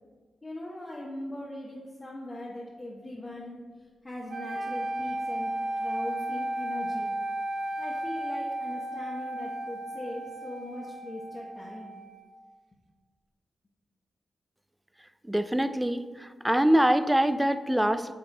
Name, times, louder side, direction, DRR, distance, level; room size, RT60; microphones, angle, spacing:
voice 1, 0.4-3.6 4.0-7.1 7.8-12.0, left 1 dB, 40° left, -5 dB, 1.1 m, -40 dB
sound 1, 4.3-12.4, right 1 dB, 60° right, 0.8 m, -34 dB
voice 2, 15.3-18.1, right 1 dB, 10° right, 11 dB, 0.4 m, -24 dB
6.7 x 3.7 x 4.6 m, 1.4 s
supercardioid pair, 45°, 0 cm